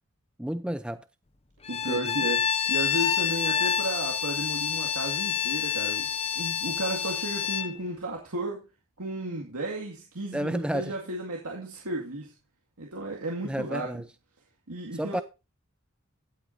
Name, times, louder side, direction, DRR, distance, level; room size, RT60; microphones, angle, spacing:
voice 1, 0.4-1.0 1.9-2.2 10.3-10.9 13.4-14.0 15.0-15.2, right 1 dB, 5° right, 0.4 m, -31 dB
Bowed string instrument, 1.6-7.7, left 7 dB, 25° left, 0.7 m, -28 dB
voice 2, 1.7-6.1 6.4-8.6 9.0-12.3 12.8-14.0 14.7-15.2, right 1 dB, 85° right, 2.1 m, -34 dB
16.5 x 8.3 x 2.7 m
head